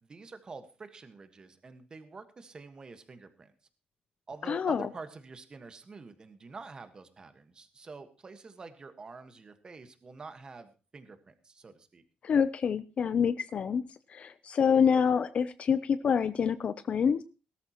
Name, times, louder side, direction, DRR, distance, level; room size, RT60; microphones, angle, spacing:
voice 1, 0.0-3.5 4.3-12.0, right 4 dB, 30° right, 9 dB, 1.4 m, -47 dB
voice 2, 4.5-4.9 12.2-13.8 14.1-17.2, left 7 dB, 45° left, 13 dB, 0.5 m, -27 dB
17.5 x 13.5 x 3.0 m, 0.32 s
cardioid pair, 145°, 3 cm